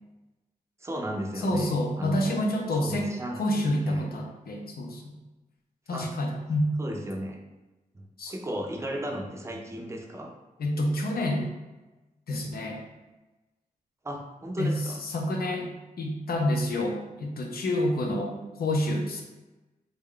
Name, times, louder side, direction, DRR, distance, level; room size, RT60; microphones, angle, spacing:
voice 1, 0.8-2.5 2.8-3.4 3.9-4.0 5.9-6.1 6.8-7.4 7.9-10.3 14.0-15.0, equal, 20° right, 1 dB, 0.4 m, -35 dB
voice 2, 1.4-5.1 5.9-6.7 8.2-8.3 10.6-11.5 12.3-12.8 14.6-15.7 16.0-19.2, left 1 dB, 90° left, 1 dB, 0.6 m, -28 dB
3.4 x 2.2 x 3.7 m, 1.1 s
wide cardioid pair, 180°, 15 cm